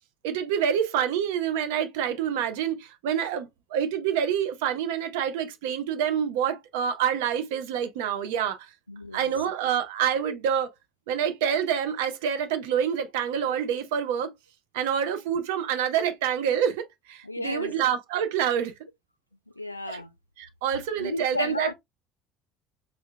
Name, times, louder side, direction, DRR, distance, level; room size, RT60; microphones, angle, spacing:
voice 1, 0.2-8.7 9.1-10.7 11.1-14.3 14.7-18.7 19.9-20.0 20.4-21.7, right 8 dB, 65° right, 0.5 m, -27 dB
voice 2, 8.9-9.3 17.2-17.7 19.6-20.1 21.0-21.7, left 2 dB, 85° left, 0.3 m, -33 dB
4.2 x 2.7 x 2.2 m
figure-of-eight pair, 60°, 0 cm